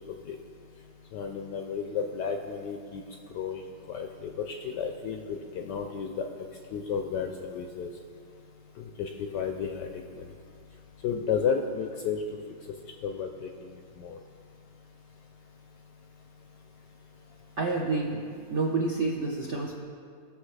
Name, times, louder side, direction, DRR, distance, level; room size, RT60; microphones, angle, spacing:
voice 1, 1.1-3.0 3.3-6.2 6.7-7.9 8.8-10.3 11.0-12.2 13.0-13.5 14.0-14.2, left 6 dB, 75° left, 4 dB, 1.0 m, -32 dB
voice 2, 17.6-18.2 18.5-19.8, right 3 dB, 70° right, -1 dB, 0.6 m, -28 dB
17.0 x 6.7 x 3.2 m, 2.3 s
omnidirectional pair, 2.3 m